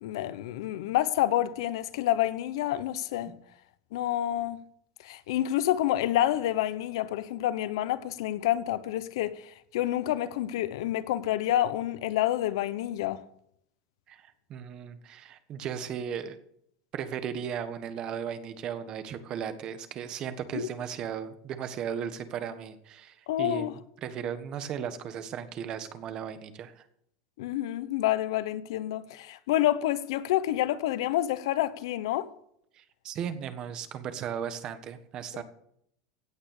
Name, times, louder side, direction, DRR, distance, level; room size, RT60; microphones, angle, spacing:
voice 1, 0.0-3.3 3.9-4.6 5.0-9.3 9.7-13.2 20.5-20.7 23.3-23.7 27.4-32.3 35.3-35.4, left 13 dB, 80° left, 1.0 m, -28 dB
voice 2, 14.1-16.4 16.9-23.7 24.0-26.8 32.7-35.4, right 8 dB, 30° right, 1.4 m, -36 dB
16.5 x 8.8 x 6.7 m
supercardioid pair, 165°, 3 cm